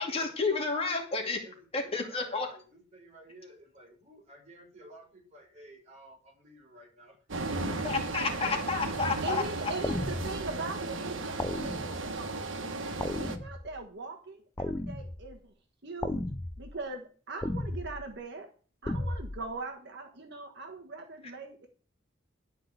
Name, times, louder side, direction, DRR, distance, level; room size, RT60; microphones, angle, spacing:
voice 1, 0.0-1.4 1.7-2.5 7.6-9.4, left 4 dB, 30° left, 1 dB, 2.5 m, -31 dB
voice 2, 1.1-8.0 8.4-9.6, right 1 dB, 35° right, -1 dB, 5.9 m, -54 dB
sound 1, 7.3-13.4, right 3 dB, 85° right, 1.3 m, -35 dB
voice 3, 9.2-12.4 13.2-15.5 15.8-16.3 16.6-18.5 18.8-21.7, right 3 dB, 60° right, 4 dB, 1.3 m, -40 dB
sound 2, 9.8-10.6 11.4-12.2 13.0-13.8 14.6-15.4 16.0-16.8 17.4-18.1 18.9-19.4, left 1 dB, 15° left, 0.5 m, -35 dB
12.0 x 4.9 x 8.3 m, 0.40 s
head